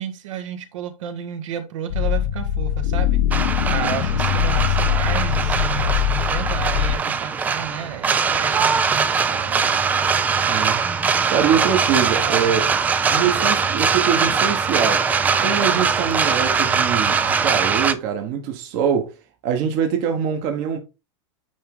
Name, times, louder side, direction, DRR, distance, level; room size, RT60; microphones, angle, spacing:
voice 1, 0.0-3.3 3.7-9.8 11.5-11.7 12.1-12.5, right 8 dB, 70° right, 1.7 m, -32 dB
sound 1, 1.9-6.9, left 10 dB, 65° left, 1.0 m, -22 dB
sound 2, 3.3-17.9, right 5 dB, 10° right, 0.4 m, -21 dB
voice 2, 10.4-10.8 11.3-12.7 13.1-15.1 15.4-19.1 19.4-20.8, right 8 dB, 40° right, 1.4 m, -23 dB
9.3 x 3.7 x 3.8 m
supercardioid pair, 155°, 17 cm